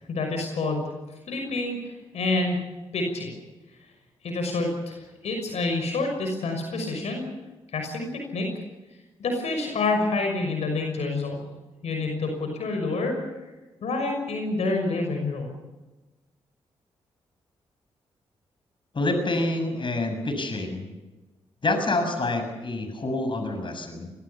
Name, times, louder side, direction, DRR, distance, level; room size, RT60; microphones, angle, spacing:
voice 1, 0.1-0.8 1.3-2.6 2.9-3.3 4.2-7.2 7.7-8.5 9.2-11.4 11.8-13.2 13.8-15.6, left 3 dB, 70° left, 3 dB, 6.1 m, -28 dB
voice 2, 18.9-20.9 21.6-24.1, left 2 dB, 45° left, 7 dB, 6.9 m, -27 dB
24.0 x 20.0 x 7.2 m, 1.1 s
supercardioid pair, 50°, 11 cm